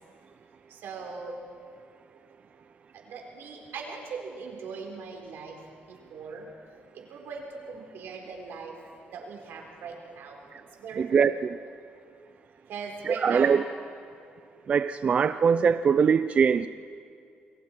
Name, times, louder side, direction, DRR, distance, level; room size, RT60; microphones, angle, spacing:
voice 1, 0.7-1.3 2.9-5.6 5.9-6.5 6.9-8.7 9.1-10.4 10.8-11.3 12.7-13.7, right 5 dB, 80° right, 1 dB, 4.0 m, -40 dB
voice 2, 11.0-11.5 13.0-13.6 14.7-16.7, right 6 dB, 35° right, 11 dB, 0.4 m, -22 dB
28.5 x 21.5 x 4.5 m, 2.4 s
cardioid pair, 165°, 4 cm